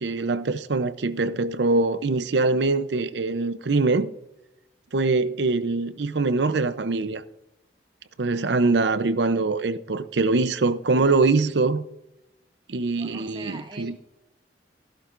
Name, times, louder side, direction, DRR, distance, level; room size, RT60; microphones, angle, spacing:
voice 1, 0.0-4.1 4.9-7.2 8.2-11.8 12.7-13.9, right 3 dB, 75° right, 0.6 m, -23 dB
voice 2, 13.0-14.0, right 2 dB, 25° right, 1.0 m, -42 dB
16.0 x 11.5 x 2.5 m
head